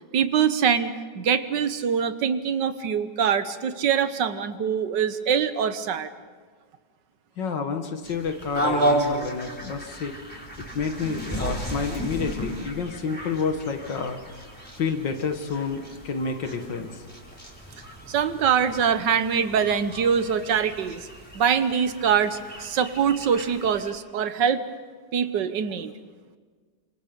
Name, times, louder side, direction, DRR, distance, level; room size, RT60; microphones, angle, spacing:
voice 1, 0.1-6.1 18.1-21.1 21.4-24.6 25.1-25.9, right 7 dB, 80° right, 11 dB, 1.8 m, -24 dB
voice 2, 7.4-14.5 14.8-17.0, left 5 dB, 85° left, 6 dB, 2.4 m, -30 dB
sound 1, 8.0-23.9, right 1 dB, 5° left, 4.7 m, -33 dB
29.5 x 25.5 x 5.3 m, 1.5 s
omnidirectional pair, 1.9 m